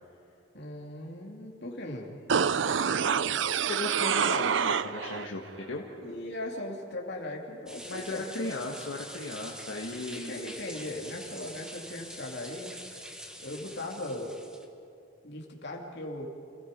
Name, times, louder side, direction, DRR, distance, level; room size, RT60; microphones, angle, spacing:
voice 1, 0.5-2.2 6.0-8.7 10.1-12.8 13.4-14.4 15.2-16.3, left 1 dB, 60° left, 0 dB, 2.8 m, -39 dB
sound 1, 2.3-5.3 5.6-5.7, right 7 dB, 65° right, 0.5 m, -27 dB
voice 2, 3.7-5.8 7.8-10.3, left 2 dB, 75° left, -2 dB, 1.7 m, -36 dB
sound 2, 7.7-14.7, equal, 5° right, 1.4 m, -45 dB
28.5 x 17.0 x 5.3 m, 2.5 s
head